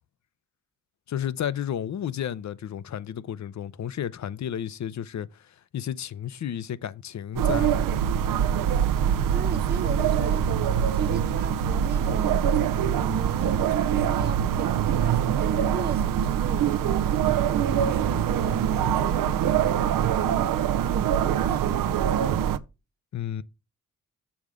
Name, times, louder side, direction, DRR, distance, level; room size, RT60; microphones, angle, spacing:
voice 1, 1.1-7.8 23.1-23.4, left 9 dB, 55° left, 0.7 m, -32 dB
sound 1, 7.4-22.6, right 9 dB, 75° right, 0.6 m, -24 dB
voice 2, 9.3-10.5 10.9-12.4 13.0-17.1 17.4-22.3, right 6 dB, 30° right, 0.5 m, -36 dB
7.2 x 3.5 x 6.3 m
supercardioid pair, 55°, 33 cm